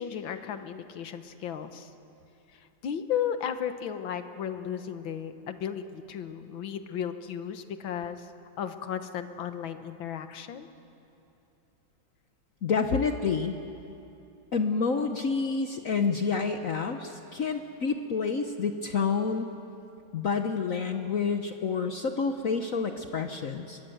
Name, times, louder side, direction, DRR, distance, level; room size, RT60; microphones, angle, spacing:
voice 1, 0.0-1.9 2.5-8.3 8.6-10.7, left 8 dB, 85° left, 9 dB, 1.9 m, -35 dB
voice 2, 12.6-13.6 14.5-19.5 20.1-23.8, left 5 dB, 50° left, 6 dB, 1.1 m, -28 dB
27.0 x 22.5 x 7.9 m, 2.8 s
omnidirectional pair, 2.1 m